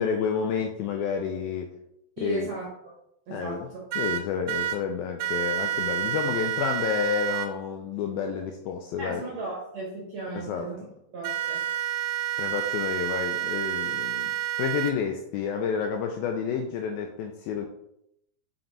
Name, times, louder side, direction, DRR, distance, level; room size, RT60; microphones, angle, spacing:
voice 1, 0.0-1.7 2.2-2.5 3.3-3.7 4.0-9.2 10.4-10.7 12.4-14.3 14.6-17.7, left 7 dB, 80° left, 3 dB, 2.1 m, -29 dB
voice 2, 2.2-2.9 3.3-3.8 9.0-10.8 11.1-11.6 12.3-12.5, right 3 dB, 60° right, -3 dB, 1.8 m, -36 dB
sound 1, 3.9-4.8 5.2-7.5 11.2-14.9, right 13 dB, 85° right, 2.6 m, -29 dB
6.0 x 5.2 x 3.9 m, 0.78 s
omnidirectional pair, 4.7 m